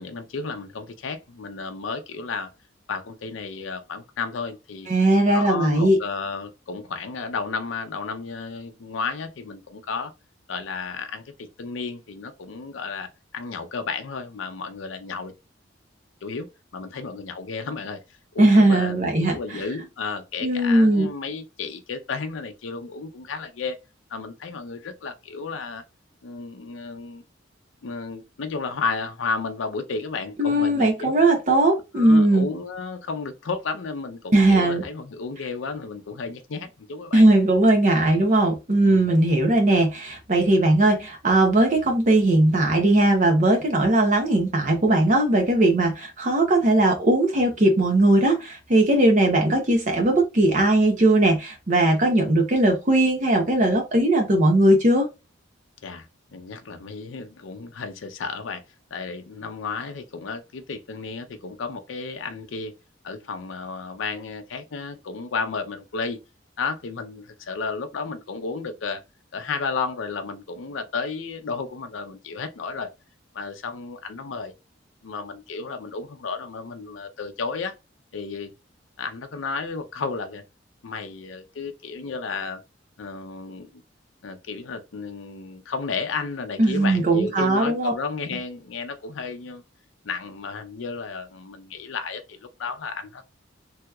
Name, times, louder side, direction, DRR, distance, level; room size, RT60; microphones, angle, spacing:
voice 1, 0.0-2.5 2.9-4.9 5.3-10.1 10.5-15.3 16.2-16.5 16.7-23.8 24.1-25.8 26.2-27.2 27.8-31.1 32.0-37.3 38.8-39.1 55.8-56.1 56.3-58.6 58.9-62.7 63.0-66.2 66.6-69.0 69.3-72.9 73.3-74.5 75.0-77.7 78.1-78.5 79.0-80.4 80.8-82.6 83.0-83.8 84.2-89.6 90.0-93.3, left 4 dB, 80° left, 0.5 m, -33 dB
voice 2, 4.9-6.0 18.4-19.4 20.4-21.1 30.4-32.5 34.3-34.8 37.1-55.1 86.6-87.9, right 1 dB, 40° right, 0.7 m, -19 dB
3.4 x 2.9 x 2.3 m
head